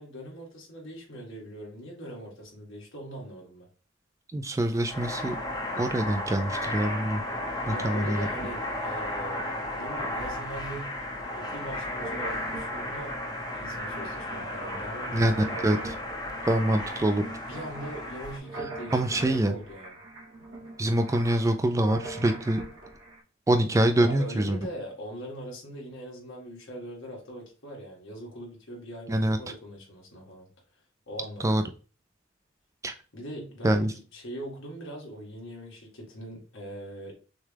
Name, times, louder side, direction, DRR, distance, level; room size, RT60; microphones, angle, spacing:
voice 1, 0.0-3.7 7.7-9.5 9.7-11.0 11.3-13.1 13.5-16.0 17.5-19.0 19.2-20.0 23.9-30.5 31.1-31.6 33.1-37.1, equal, 65° left, -2 dB, 1.9 m, -41 dB
voice 2, 4.3-5.4 5.8-7.2 7.7-8.3 15.1-15.9 16.5-17.2 18.9-19.6 20.8-22.6 23.5-24.6 29.1-29.4 31.4-31.6 32.8-32.9 33.6-33.9, right 1 dB, 15° right, 7 dB, 0.3 m, -25 dB
sound 1, 4.7-18.4, left 1 dB, 20° left, 0.9 m, -34 dB
sound 2, 12.0-23.2, right 2 dB, 90° right, 1.7 m, -42 dB
6.4 x 2.3 x 3.3 m, 0.37 s
head